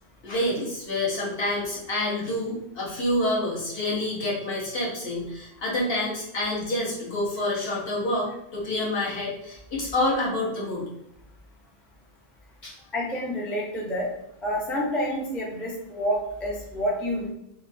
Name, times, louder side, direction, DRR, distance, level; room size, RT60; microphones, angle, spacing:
voice 1, 0.2-10.9 12.6-12.7, left 1 dB, 65° left, -6 dB, 1.2 m, -28 dB
voice 2, 12.9-14.1 14.4-17.3, equal, ahead, -4 dB, 0.3 m, -28 dB
2.9 x 2.3 x 2.5 m, 0.79 s
omnidirectional pair, 1.1 m